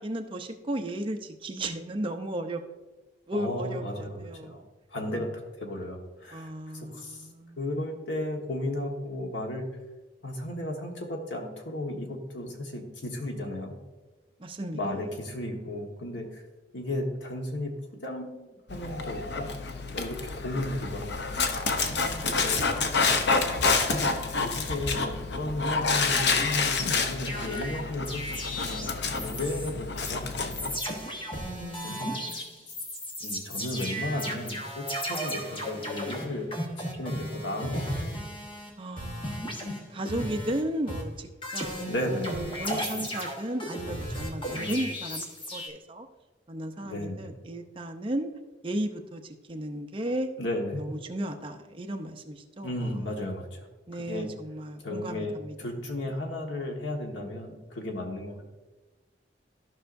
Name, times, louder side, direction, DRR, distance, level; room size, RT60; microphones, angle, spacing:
voice 1, 0.0-2.6 3.3-4.7 5.1-5.3 6.3-7.6 14.4-14.8 21.9-23.2 31.4-32.6 38.8-39.6 39.9-45.2 45.5-46.1 46.5-48.3 48.6-50.3 50.8-53.0 53.9-55.6, right 1 dB, 30° right, 5 dB, 0.6 m, -35 dB
voice 2, 3.3-4.6 4.9-5.3 5.6-7.3 7.6-9.7 10.2-13.7 14.7-16.4 16.7-17.7 18.0-19.5 19.9-21.3 22.2-22.6 23.9-30.7 32.0-32.5 33.2-36.5 37.0-37.9 40.1-40.4 41.9-42.4 42.7-43.1 44.5-44.8 46.8-47.2 50.4-50.8 52.6-53.7 53.9-54.3 54.8-58.5, left 1 dB, 85° left, 1 dB, 1.4 m, -34 dB
Dog, 18.7-30.8, left 4 dB, 70° left, 0.8 m, -28 dB
sound 1, 27.2-29.7 30.0-30.1 30.5-38.7 39.0-40.6 40.9-45.7, equal, 30° left, 1.3 m, -35 dB
14.0 x 5.5 x 2.6 m, 1.2 s
head